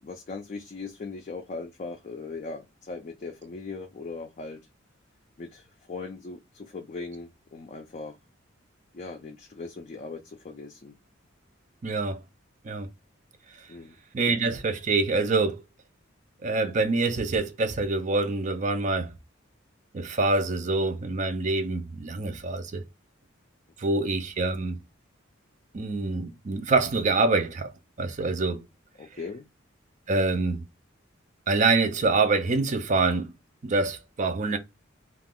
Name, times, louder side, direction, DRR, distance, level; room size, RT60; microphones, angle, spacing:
voice 1, 0.0-4.6 5.4-8.2 8.9-10.9 13.7-14.0 29.0-29.4, left 3 dB, 35° left, 0.4 m, -39 dB
voice 2, 11.8-12.2 12.6-12.9 14.1-15.6 16.4-19.1 19.9-22.8 23.8-24.8 25.7-27.7 28.0-28.6 30.1-30.6 31.5-33.3 33.6-34.6, right 3 dB, 40° right, 0.4 m, -25 dB
2.4 x 2.3 x 3.5 m
head